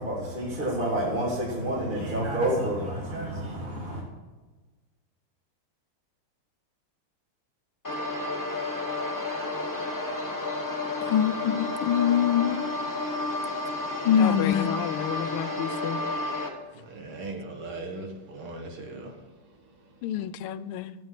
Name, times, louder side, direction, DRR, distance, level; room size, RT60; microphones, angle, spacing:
voice 1, 0.0-4.0, right 1 dB, 25° right, 1.9 m, -29 dB
sound 1, 7.8-16.5, left 2 dB, 10° left, 0.9 m, -31 dB
voice 2, 11.1-12.7 14.1-14.7, left 9 dB, 70° left, 1.2 m, -23 dB
voice 3, 14.2-16.0 20.0-20.9, left 11 dB, 90° left, 1.5 m, -32 dB
voice 4, 16.7-20.0, right 2 dB, 80° right, 2.6 m, -40 dB
12.5 x 8.0 x 5.8 m
omnidirectional pair, 2.4 m